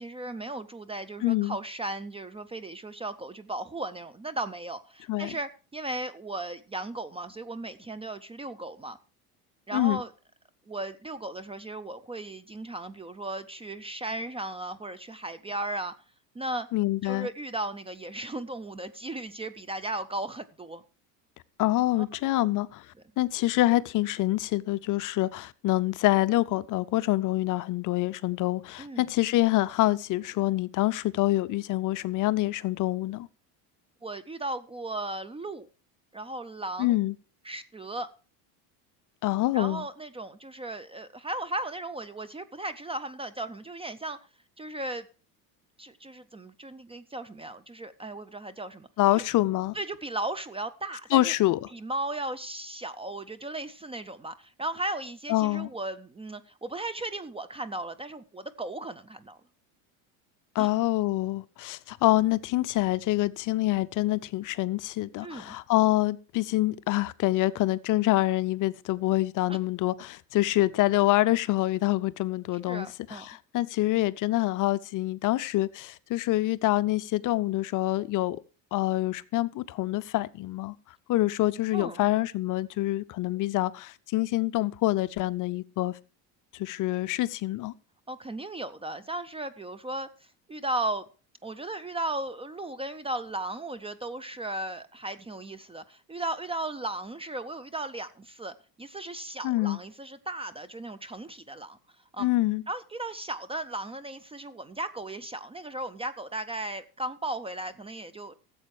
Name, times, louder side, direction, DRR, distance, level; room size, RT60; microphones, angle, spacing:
voice 1, 0.0-9.0 9.7-10.1 10.7-15.9 16.3-16.7 17.0-20.8 22.0-22.1 22.4-22.5 28.8-29.0 34.0-35.7 36.1-37.0 37.4-38.1 39.5-44.2 44.6-45.1 45.8-48.9 49.1-49.2 49.7-51.3 51.7-59.4 60.6-60.7 65.2-65.6 69.5-69.6 72.7-73.3 81.7-82.1 88.1-90.1 90.5-91.0 91.4-101.8 102.1-102.3 102.7-108.3, right 2 dB, 15° right, 0.5 m, -36 dB
voice 2, 1.2-1.6 5.1-5.3 9.7-10.0 16.7-17.3 21.6-22.9 23.2-33.3 36.8-37.1 39.2-39.8 49.0-49.8 51.1-51.7 55.3-55.7 60.5-78.4 78.7-80.7 81.1-86.0 86.5-87.7 99.4-99.8 102.2-102.6, left 17 dB, 45° left, 0.6 m, -26 dB
13.5 x 7.8 x 4.7 m
supercardioid pair, 110°, 45 cm